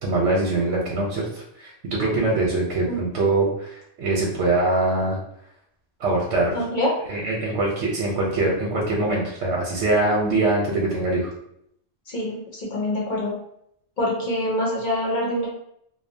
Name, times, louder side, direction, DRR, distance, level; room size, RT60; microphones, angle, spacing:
voice 1, 0.0-5.2 6.0-6.6 7.1-11.3, right 2 dB, 90° right, -3 dB, 1.0 m, -23 dB
voice 2, 6.5-6.9 12.1-13.4 14.0-15.5, left 1 dB, 50° left, -3 dB, 0.7 m, -25 dB
2.7 x 2.0 x 2.6 m, 0.71 s
omnidirectional pair, 1.2 m